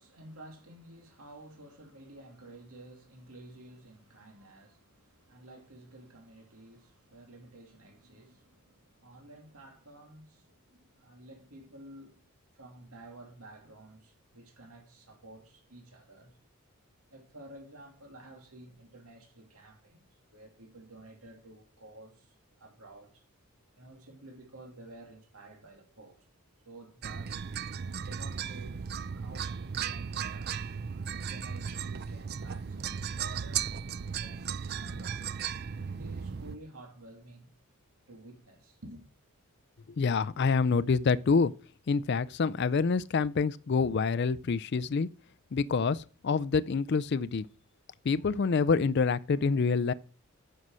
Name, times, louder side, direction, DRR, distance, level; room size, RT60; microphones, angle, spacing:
voice 1, 0.0-12.3 12.5-16.4 17.1-23.2 23.8-26.2 26.6-27.5 28.0-30.6 31.1-33.8 34.1-35.4 35.9-37.5 38.1-39.0, right 1 dB, 80° right, 2.6 m, -52 dB
sound 1, 27.0-36.6, right 7 dB, 45° right, 0.4 m, -36 dB
voice 2, 39.9-41.5 41.9-45.1 45.5-47.5 48.0-49.9, left 5 dB, 50° left, 0.4 m, -27 dB
9.6 x 6.5 x 6.2 m
head